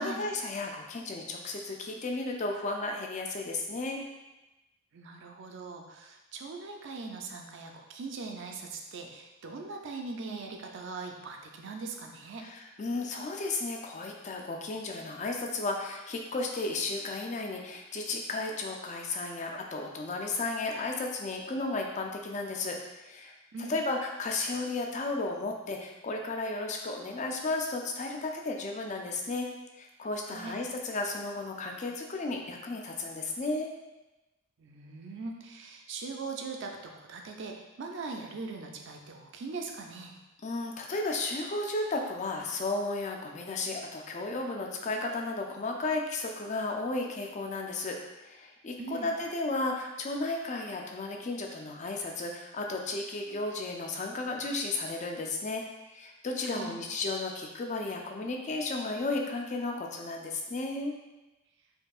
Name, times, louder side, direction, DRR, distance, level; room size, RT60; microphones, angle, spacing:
voice 1, 0.0-4.0 12.4-23.3 23.7-29.5 29.7-33.7 40.4-55.6 55.9-60.9, left 2 dB, 35° left, 2 dB, 0.4 m, -34 dB
voice 2, 4.9-12.5 23.5-23.8 30.3-30.6 34.6-40.1 48.8-49.1 56.5-56.7, right 3 dB, 55° right, 2 dB, 0.4 m, -40 dB
4.5 x 2.7 x 2.4 m, 1.0 s
head